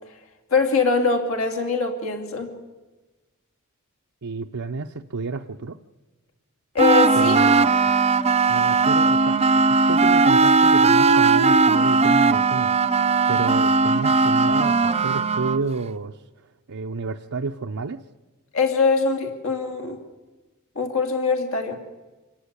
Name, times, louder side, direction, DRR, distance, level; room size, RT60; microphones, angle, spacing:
voice 1, 0.5-2.5 6.7-7.4 18.5-20.0 20.7-21.8, left 4 dB, 70° left, 5 dB, 2.8 m, -22 dB
voice 2, 4.2-5.8 7.1-7.7 8.5-9.4 9.8-16.2 16.7-18.0, right 4 dB, 75° right, 2 dB, 0.7 m, -30 dB
sound 1, 6.8-15.6, right 4 dB, 30° right, 0.7 m, -18 dB
26.0 x 15.0 x 9.7 m, 1.2 s
head